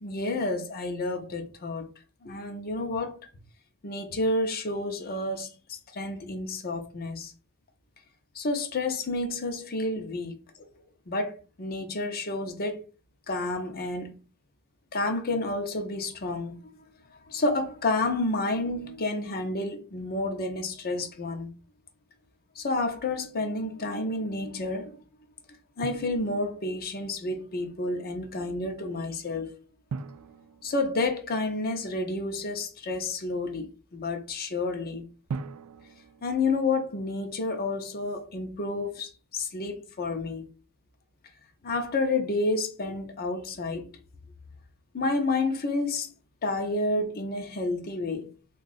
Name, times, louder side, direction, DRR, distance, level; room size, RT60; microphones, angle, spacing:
voice 1, 0.0-1.9 2.2-3.3 3.8-7.3 8.3-10.4 11.1-12.8 13.3-14.2 14.9-16.8 17.3-21.5 22.6-25.0 25.8-29.6 30.6-35.0 36.2-40.5 41.6-43.9 44.9-46.1 46.4-48.3, left 2 dB, 45° left, 0.7 m, -30 dB
Drum, 25.8-26.9 29.9-31.7 35.3-37.3, right 5 dB, 80° right, 0.4 m, -41 dB
3.6 x 2.4 x 4.0 m
head